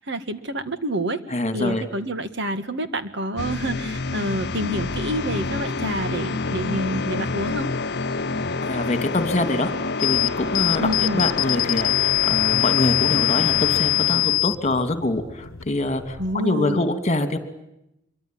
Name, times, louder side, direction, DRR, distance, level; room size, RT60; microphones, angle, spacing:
voice 1, 0.0-1.2 1.5-7.7 10.8-11.3 16.2-16.8, right 1 dB, 60° right, 10 dB, 1.9 m, -28 dB
voice 2, 1.3-1.8 8.6-9.7 10.0-17.4, left 2 dB, 35° left, 10 dB, 2.7 m, -25 dB
sound 1, 3.4-14.4, left 3 dB, 55° left, 1.0 m, -28 dB
sound 2, 10.0-16.4, left 16 dB, 80° left, 1.0 m, -23 dB
25.0 x 24.0 x 9.2 m, 0.85 s
head